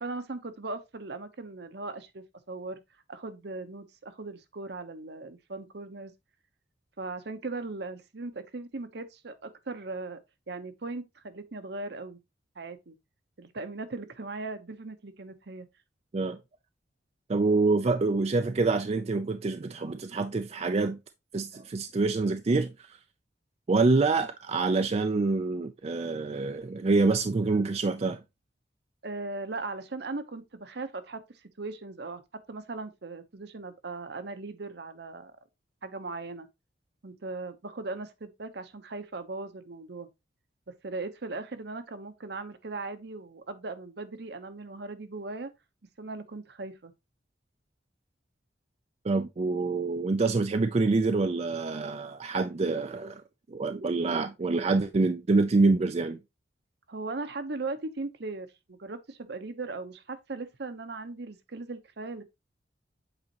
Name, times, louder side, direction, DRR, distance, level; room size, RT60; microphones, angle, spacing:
voice 1, 0.0-2.8 3.1-6.1 7.0-10.2 10.5-12.2 12.6-13.0 13.4-15.7 29.0-32.2 32.5-35.3 35.8-36.5 37.0-40.1 40.7-45.5 46.0-46.9 56.9-62.2, right 3 dB, 65° right, 0.8 m, -38 dB
voice 2, 17.3-21.0 21.3-23.0 23.7-28.2 49.0-53.2 53.5-56.2, right 3 dB, 35° right, 0.4 m, -26 dB
8.0 x 4.2 x 2.9 m
head